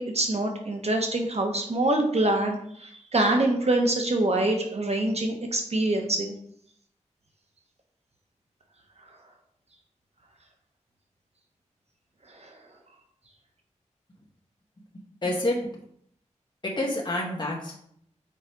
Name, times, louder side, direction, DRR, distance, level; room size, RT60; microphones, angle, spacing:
voice 1, 0.0-6.3, right 2 dB, 55° right, 2 dB, 1.1 m, -25 dB
voice 2, 15.2-15.6 16.6-17.8, left 1 dB, 35° left, -2 dB, 1.6 m, -28 dB
6.2 x 4.9 x 4.6 m, 0.68 s
wide cardioid pair, 65°, 13 cm